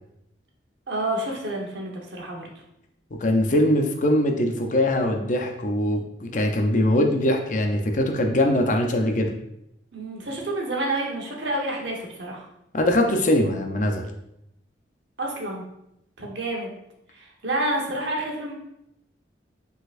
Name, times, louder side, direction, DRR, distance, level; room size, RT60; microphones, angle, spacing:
voice 1, 0.9-2.5 9.9-12.5 15.2-15.6 16.2-16.7 17.1-18.5, right 1 dB, 75° right, -1 dB, 1.1 m, -29 dB
voice 2, 3.2-9.3 12.7-14.1, left 1 dB, 45° left, 3 dB, 0.6 m, -22 dB
5.2 x 4.0 x 2.5 m, 0.82 s
head